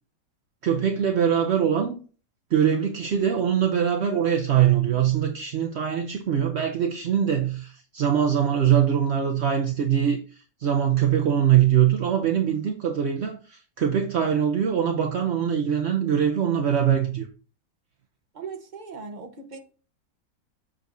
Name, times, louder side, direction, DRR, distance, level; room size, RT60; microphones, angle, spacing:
voice 1, 0.6-2.0 2.5-10.2 10.6-17.3, right 9 dB, 60° right, 0.7 m, -22 dB
voice 2, 18.4-19.6, right 5 dB, 35° right, 0.9 m, -38 dB
7.5 x 6.7 x 2.6 m
omnidirectional pair, 1.9 m